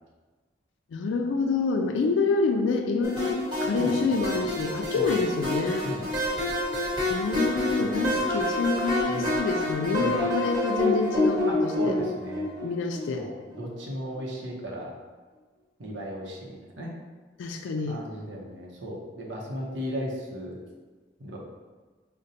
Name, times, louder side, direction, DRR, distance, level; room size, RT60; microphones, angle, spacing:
voice 1, 0.9-5.9 7.1-11.9 12.6-13.3 17.4-18.0, left 4 dB, 90° left, 5 dB, 0.3 m, -27 dB
sound 1, 3.0-13.6, left 1 dB, 25° right, 1.1 m, -28 dB
voice 2, 3.7-4.3 4.9-5.2 5.8-6.3 7.8-8.2 9.1-9.3 10.0-10.2 11.4-12.5 13.1-14.9 15.8-16.9 17.9-20.6 21.2-21.4, equal, 75° right, -1 dB, 0.7 m, -36 dB
5.0 x 2.2 x 2.7 m, 1.3 s
head